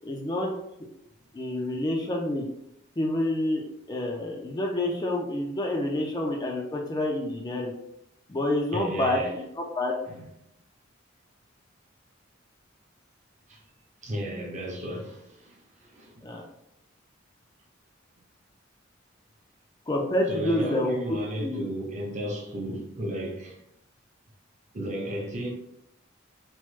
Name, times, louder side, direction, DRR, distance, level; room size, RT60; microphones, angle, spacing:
voice 1, 0.0-0.5 1.3-2.5 3.0-3.6 3.9-7.7 8.3-9.9 16.2-16.4 19.9-21.6, left 1 dB, 20° left, 0.4 m, -28 dB
voice 2, 8.7-9.3 10.1-10.2 13.5-13.6 14.0-15.5 15.8-16.2 20.3-23.6 24.7-25.5, right 1 dB, 40° right, 0.6 m, -34 dB
3.0 x 2.1 x 3.1 m
head